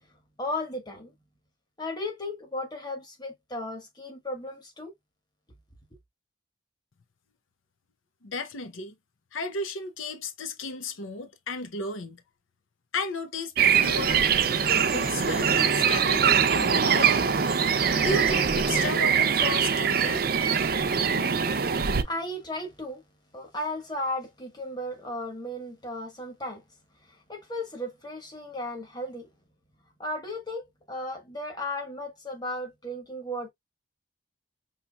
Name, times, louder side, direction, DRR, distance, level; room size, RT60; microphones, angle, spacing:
voice 1, 0.4-1.1 1.8-4.9 22.0-23.0 23.3-26.6 27.0-29.3 30.0-33.5, left 1 dB, 20° left, 1.4 m, -35 dB
voice 2, 8.2-8.9 9.3-12.2 12.9-14.3 14.7-17.3 18.0-20.4, left 2 dB, 85° left, 0.8 m, -34 dB
sound 1, 13.6-22.0, right 7 dB, 50° right, 0.5 m, -23 dB
sound 2, 13.7-19.0, right 2 dB, 5° right, 0.7 m, -42 dB
5.6 x 3.0 x 2.3 m
head